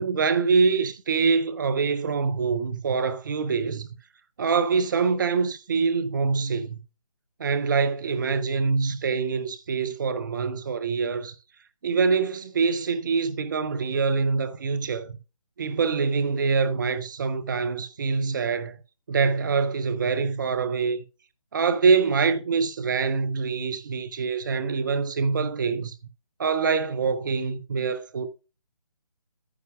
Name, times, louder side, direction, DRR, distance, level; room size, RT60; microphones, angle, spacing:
voice 1, 0.0-3.9 4.4-6.8 7.4-11.4 11.8-15.2 15.6-18.8 19.1-21.0 21.5-25.9 26.4-28.3, right 5 dB, 35° right, 0.6 m, -25 dB
9.6 x 9.5 x 2.3 m
figure-of-eight pair, 150°, 19 cm